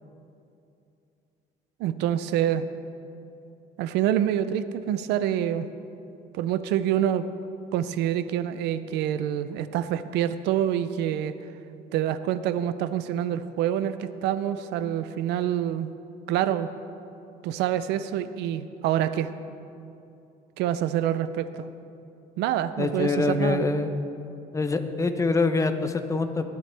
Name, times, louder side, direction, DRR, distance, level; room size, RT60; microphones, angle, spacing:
voice 1, 1.8-2.6 3.8-5.7 6.3-7.2 7.7-11.3 11.9-15.9 16.3-16.7 17.4-19.3 20.6-21.6 22.4-23.6, right 11 dB, 90° right, 13 dB, 0.6 m, -26 dB
voice 2, 22.8-23.9 24.5-26.5, left 3 dB, 20° left, 8 dB, 0.8 m, -25 dB
18.0 x 9.4 x 3.4 m, 2.7 s
cardioid pair, 110°, 17 cm